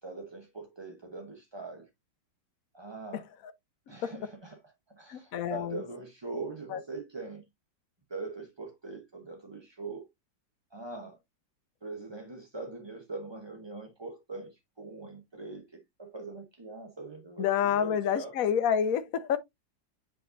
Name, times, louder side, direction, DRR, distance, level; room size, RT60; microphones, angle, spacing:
voice 1, 0.0-1.9 2.7-3.3 3.9-7.4 8.1-10.1 10.7-11.2 11.8-18.4, right 3 dB, 25° right, 0.6 m, -42 dB
voice 2, 5.1-5.8 6.7-6.8 17.4-19.4, left 8 dB, 60° left, 1.0 m, -28 dB
8.0 x 5.2 x 2.6 m
omnidirectional pair, 2.0 m